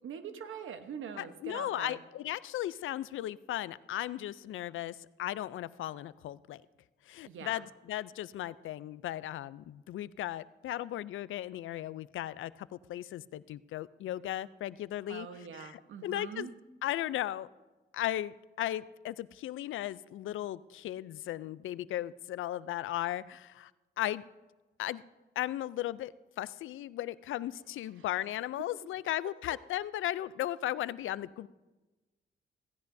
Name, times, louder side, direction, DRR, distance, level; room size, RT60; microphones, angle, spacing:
voice 1, 0.0-2.0 7.3-7.6 15.1-16.5 28.0-28.1 28.6-28.7, right 7 dB, 80° right, 9 dB, 1.0 m, -43 dB
voice 2, 1.2-6.6 7.1-15.3 15.6-15.7 16.0-16.5 16.8-17.5 17.9-23.7 24.0-24.2 24.8-25.0 25.4-26.1 26.4-31.5, left 13 dB, 90° left, 18 dB, 0.4 m, -36 dB
16.5 x 16.0 x 2.6 m, 1.2 s
cardioid pair, 100°, 20 cm